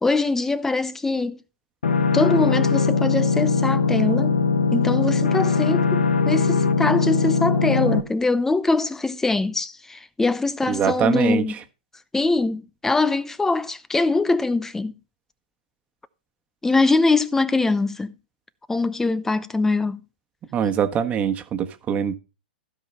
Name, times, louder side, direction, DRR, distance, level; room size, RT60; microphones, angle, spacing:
voice 1, 0.0-1.4 2.1-4.4 4.7-11.6 12.1-14.9 16.6-18.1 18.7-20.0, left 3 dB, 10° left, 0.6 m, -23 dB
sound 1, 1.8-8.0, left 4 dB, 85° left, 1.2 m, -20 dB
voice 2, 10.7-11.4 20.5-22.1, right 8 dB, 25° right, 1.4 m, -23 dB
15.5 x 5.4 x 4.1 m
hypercardioid pair, 120°, 5 cm